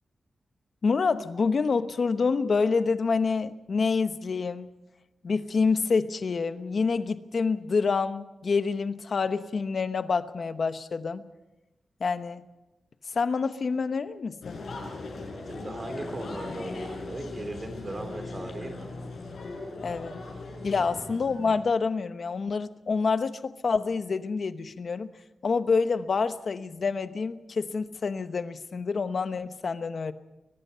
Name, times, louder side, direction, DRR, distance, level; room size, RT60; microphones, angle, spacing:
voice 1, 0.8-4.7 5.2-11.2 12.0-12.4 13.1-14.6 19.8-20.2 20.6-25.1 25.4-30.1, left 4 dB, 50° left, 10 dB, 1.0 m, -27 dB
sound 1, 14.4-21.6, left 3 dB, 65° left, 6.6 m, -39 dB
voice 2, 15.5-18.9 20.7-21.0, right 2 dB, 30° right, 7 dB, 3.1 m, -38 dB
23.0 x 20.5 x 5.7 m, 1.0 s
wide cardioid pair, 160°, 0 cm